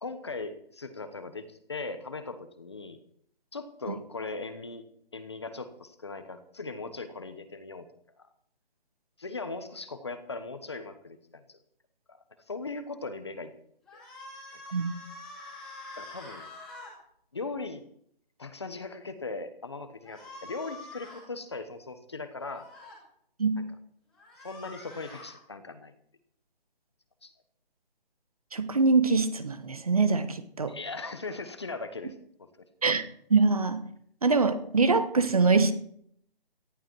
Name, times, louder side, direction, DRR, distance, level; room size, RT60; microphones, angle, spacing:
voice 1, 0.0-3.0 3.5-4.8 5.1-7.9 8.2-8.3 9.2-11.6 12.1-12.2 12.5-13.5 13.9-14.0 16.0-16.4 17.3-17.8 18.4-22.7 24.4-25.9 27.2-27.3 30.7-32.5, left 3 dB, 30° left, 10 dB, 1.1 m, -39 dB
sound 1, 13.9-16.9 20.0-21.3 22.4-23.0 24.1-25.3, left 2 dB, ahead, 2.4 m, -46 dB
voice 2, 23.4-23.7 28.5-30.8 32.8-33.0 33.3-33.9 34.2-35.7, right 4 dB, 40° right, 12 dB, 1.2 m, -24 dB
18.5 x 14.0 x 4.6 m, 0.67 s
hypercardioid pair, 180°, 30 cm